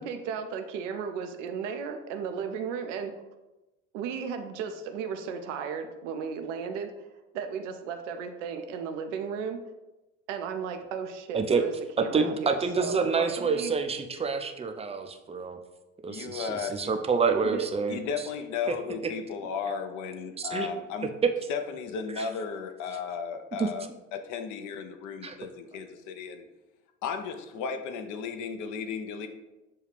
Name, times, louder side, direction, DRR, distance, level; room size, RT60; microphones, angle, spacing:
voice 1, 0.0-3.1 3.9-7.1 7.3-9.6 10.3-13.7 17.3-17.7, right 6 dB, 75° right, 6 dB, 0.5 m, -35 dB
voice 2, 12.1-15.6 16.0-18.0 18.7-18.8 20.4-20.7 22.2-22.3 23.6-23.7 25.2-25.4, right 4 dB, 15° right, 5 dB, 0.4 m, -28 dB
voice 3, 16.1-16.9 17.9-21.1 21.5-26.5 27.0-29.3, left 6 dB, 55° left, 7 dB, 0.6 m, -35 dB
6.8 x 2.3 x 3.3 m, 1.0 s
hypercardioid pair, 60°, 37 cm